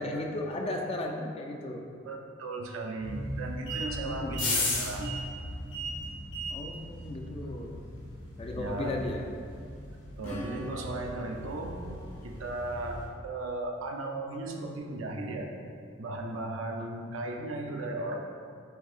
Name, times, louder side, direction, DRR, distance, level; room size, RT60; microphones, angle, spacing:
voice 1, 0.0-1.8 4.0-4.4 6.5-7.8 8.4-9.3 16.8-16.9, left 2 dB, 30° left, 2 dB, 0.3 m, -35 dB
voice 2, 2.1-5.1 8.6-9.0 10.2-11.8 12.2-15.5 16.0-18.2, right 2 dB, 85° right, 2 dB, 0.5 m, -36 dB
sound 1, 3.0-13.0, left 1 dB, 60° left, 1.1 m, -37 dB
Acoustic guitar / Strum, 10.2-14.5, equal, 85° left, 0.8 m, -45 dB
7.6 x 2.7 x 2.4 m, 2.3 s
head